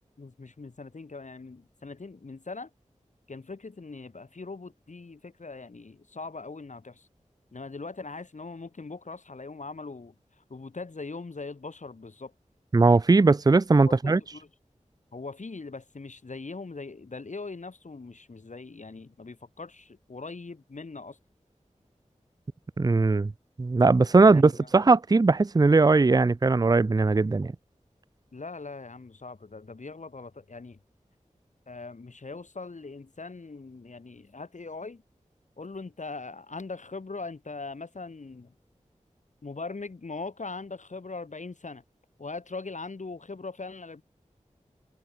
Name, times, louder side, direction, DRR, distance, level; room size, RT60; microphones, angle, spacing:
voice 1, 0.2-2.7 3.3-7.1 7.5-10.1 10.5-12.3 13.9-14.5 15.1-21.2 24.1-24.7 28.3-30.8 31.7-35.0 35.6-38.5 39.4-41.8 42.2-44.0, left 3 dB, 70° left, 2.3 m, -41 dB
voice 2, 12.7-14.2 22.8-23.3 23.6-27.5, right 3 dB, 30° right, 0.4 m, -19 dB
wide cardioid pair, 50°, 13 cm